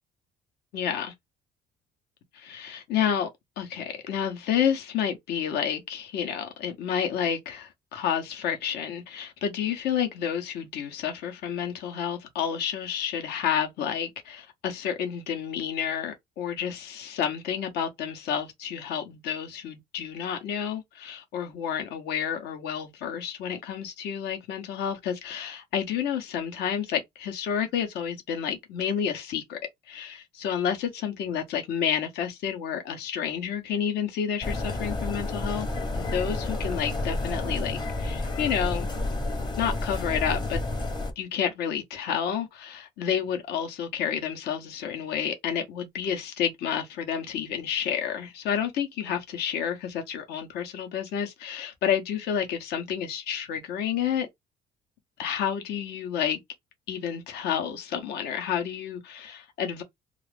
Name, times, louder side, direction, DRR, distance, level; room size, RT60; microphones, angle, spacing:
voice 1, 0.7-1.1 2.3-3.3 3.6-29.6 29.9-35.7 35.9-38.9 39.6-40.6 41.2-54.3 55.2-56.4 56.9-59.8, left 8 dB, 75° left, 0.9 m, -30 dB
sound 1, 34.4-41.1, left 2 dB, 25° left, 0.8 m, -30 dB
2.4 x 2.4 x 3.3 m
cardioid pair, 110°, 17 cm